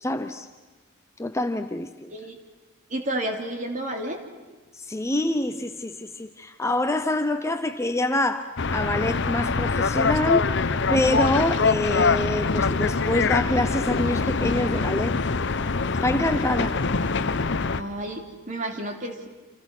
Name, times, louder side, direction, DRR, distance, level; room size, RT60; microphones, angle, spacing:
voice 1, 0.0-0.5 1.2-2.1 4.8-10.5 10.9-15.2 16.0-16.8, left 1 dB, 15° left, 8 dB, 0.7 m, -26 dB
voice 2, 2.9-4.2 17.8-19.3, right 1 dB, 35° right, 3 dB, 3.0 m, -31 dB
sound 1, 8.6-17.8, left 4 dB, 55° left, 0.8 m, -24 dB
29.0 x 26.5 x 6.1 m, 1.3 s
head